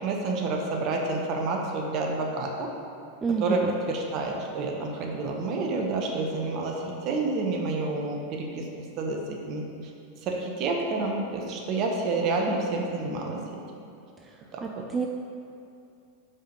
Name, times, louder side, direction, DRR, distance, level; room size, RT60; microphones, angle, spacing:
voice 1, 0.0-2.7 3.4-3.6 3.9-8.7 9.0-9.2 9.5-9.7 10.2-13.4 14.5-14.8, right 3 dB, 45° right, 1 dB, 1.0 m, -29 dB
voice 2, 3.2-3.8 14.2-15.1, right 5 dB, 15° right, 2 dB, 0.4 m, -30 dB
5.4 x 4.9 x 5.2 m, 2.6 s
figure-of-eight pair, 90°, 0 cm